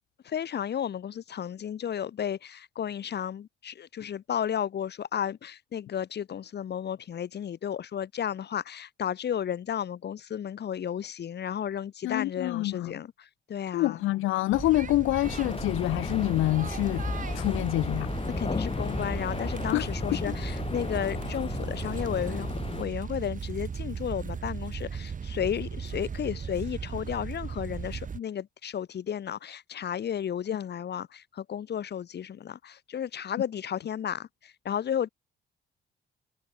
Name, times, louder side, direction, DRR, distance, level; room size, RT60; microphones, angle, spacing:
voice 1, 0.2-14.0 18.4-22.5 22.8-35.1, left 9 dB, 60° left, 2.8 m, -33 dB
voice 2, 12.0-12.9 13.7-17.1 17.3-18.1 19.7-19.9, left 17 dB, 90° left, 1.0 m, -26 dB
sound 1, 14.5-28.2, right 6 dB, 40° right, 2.5 m, -37 dB
sound 2, 15.2-22.9, left 4 dB, 30° left, 6.7 m, -34 dB
cardioid pair, 90°, 20 cm